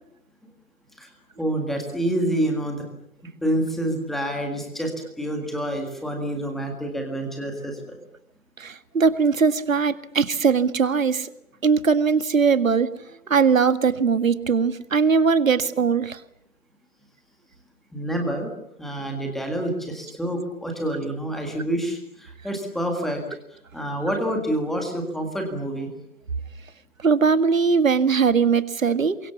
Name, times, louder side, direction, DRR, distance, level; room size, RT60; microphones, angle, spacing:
voice 1, 1.4-2.8 3.4-8.0 17.9-18.5 18.8-23.2 23.7-25.9, right 1 dB, ahead, 3 dB, 1.8 m, -27 dB
voice 2, 8.6-11.3 11.6-12.9 13.3-16.2 27.0-29.2, right 5 dB, 60° right, 12 dB, 1.9 m, -20 dB
28.5 x 23.5 x 7.1 m, 0.77 s
figure-of-eight pair, 160°, 45 cm